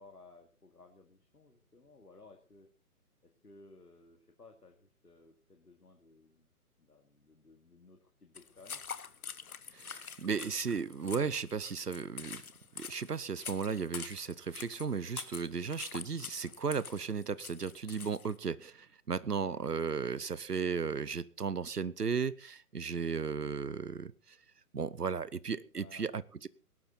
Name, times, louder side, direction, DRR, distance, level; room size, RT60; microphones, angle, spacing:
voice 1, 0.0-2.7 3.2-6.5 6.8-8.8 19.4-19.6 25.7-26.1, left 3 dB, 85° left, 4 dB, 2.5 m, -58 dB
sound 1, 8.4-18.4, left 6 dB, 65° left, 1.4 m, -46 dB
voice 2, 9.7-12.4 12.8-24.4 24.7-26.5, right 5 dB, 85° right, 20 dB, 0.9 m, -35 dB
18.5 x 12.0 x 4.1 m, 0.35 s
figure-of-eight pair, 135°, 46 cm